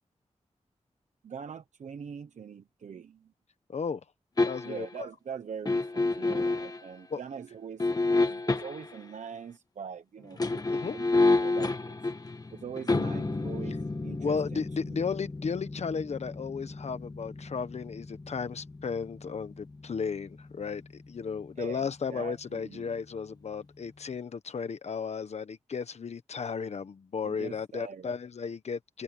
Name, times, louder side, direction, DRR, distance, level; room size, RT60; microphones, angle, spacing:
voice 1, 1.2-3.3 4.6-10.6 10.9-11.9 12.5-15.0 21.6-22.9 27.2-28.1, right 7 dB, 85° right, 1.1 m, -43 dB
voice 2, 3.7-4.0 4.4-5.1 7.1-7.2 10.6-10.9 14.2-29.0, left 5 dB, 65° left, 1.4 m, -34 dB
sound 1, 4.4-4.9 5.6-6.8 7.8-9.0 10.2-21.2 21.5-21.6, left 3 dB, 30° left, 1.8 m, -30 dB
open air
wide cardioid pair, 105°, 12 cm